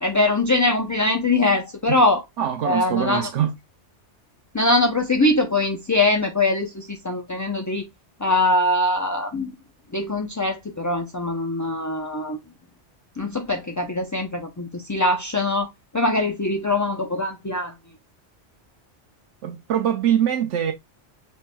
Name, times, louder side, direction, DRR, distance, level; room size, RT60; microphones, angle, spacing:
voice 1, 0.0-2.2 2.6-3.3 4.5-7.8 8.2-9.5 9.9-12.4 13.2-17.7, left 2 dB, 25° left, 0.4 m, -22 dB
voice 2, 2.4-3.5 19.4-20.7, right 9 dB, 85° right, 1.0 m, -23 dB
6.1 x 3.4 x 2.2 m
omnidirectional pair, 1.2 m